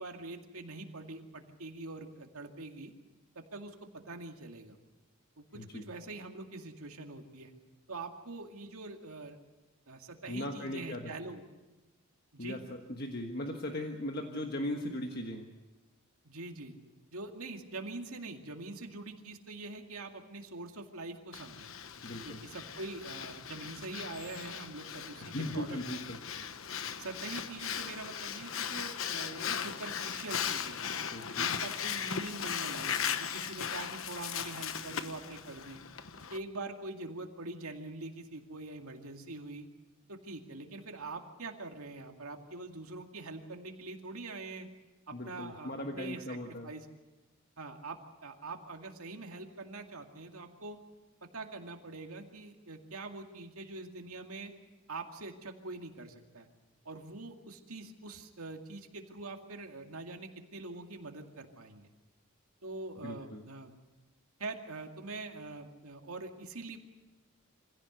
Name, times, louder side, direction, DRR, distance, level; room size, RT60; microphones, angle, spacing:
voice 1, 0.0-2.9 3.4-4.8 5.4-7.5 7.9-9.4 9.9-11.4 12.3-12.6 16.2-16.8 17.1-21.7 22.2-25.8 27.0-30.8 31.3-35.8 36.3-39.7 40.1-44.7 45.1-46.9 47.6-50.8 51.2-54.5 54.9-56.5 56.8-61.9 62.6-63.7 64.4-66.8, right 2 dB, 85° right, 4 dB, 2.3 m, -44 dB
voice 2, 5.5-5.9 10.3-11.1 12.4-15.5 22.0-22.4 25.2-26.2 31.1-31.5 45.1-46.7 63.0-63.4, left 1 dB, 45° left, 3 dB, 1.4 m, -38 dB
Breathing, 21.3-36.4, left 8 dB, 70° left, 1.1 m, -38 dB
25.0 x 16.5 x 8.0 m, 1.1 s
head